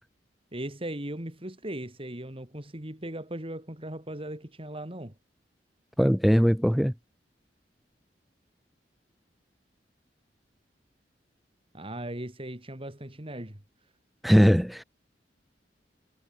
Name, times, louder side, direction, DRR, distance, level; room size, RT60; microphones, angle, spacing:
voice 1, 0.5-5.1 11.7-13.6, right 1 dB, 30° right, 3.8 m, -38 dB
voice 2, 6.0-6.9 14.2-14.8, equal, ahead, 2.8 m, -20 dB
head